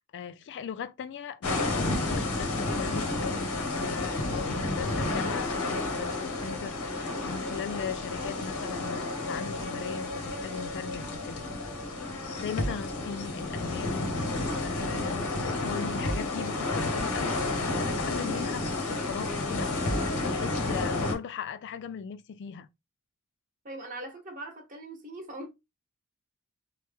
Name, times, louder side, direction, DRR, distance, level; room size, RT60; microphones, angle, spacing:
voice 1, 0.0-11.5 12.4-22.7, left 7 dB, 55° left, 0.3 m, -39 dB
sound 1, 1.4-21.1, left 2 dB, 80° left, 0.8 m, -31 dB
voice 2, 23.6-25.5, right 1 dB, 40° right, 1.0 m, -41 dB
3.1 x 2.1 x 3.3 m
head